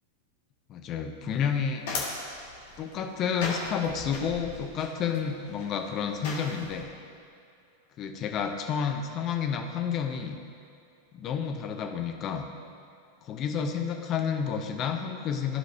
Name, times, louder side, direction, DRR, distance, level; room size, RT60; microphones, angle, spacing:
voice 1, 0.7-1.8 2.8-6.9 8.0-10.4 11.1-12.4 13.2-15.6, left 7 dB, 35° left, 4 dB, 0.7 m, -30 dB
sound 1, 1.2-6.8, left 3 dB, 55° left, 1.7 m, -38 dB
15.0 x 5.2 x 2.8 m, 2.5 s
figure-of-eight pair, 90°, 0 cm